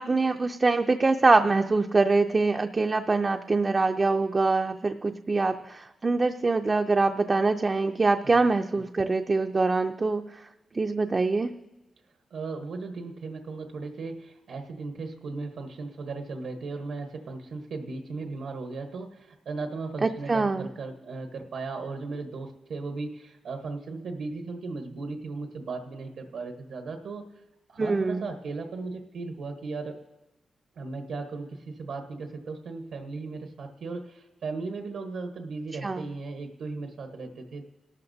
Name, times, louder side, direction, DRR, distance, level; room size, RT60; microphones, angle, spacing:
voice 1, 0.0-10.5 10.7-11.5 20.0-20.7 27.8-28.2 35.8-36.0, right 3 dB, 30° right, 6 dB, 0.4 m, -24 dB
voice 2, 12.3-27.3 27.7-30.0 30.7-37.7, right 3 dB, 85° right, 4 dB, 1.1 m, -36 dB
29.5 x 12.5 x 2.7 m, 1.0 s
wide cardioid pair, 140°, 0 cm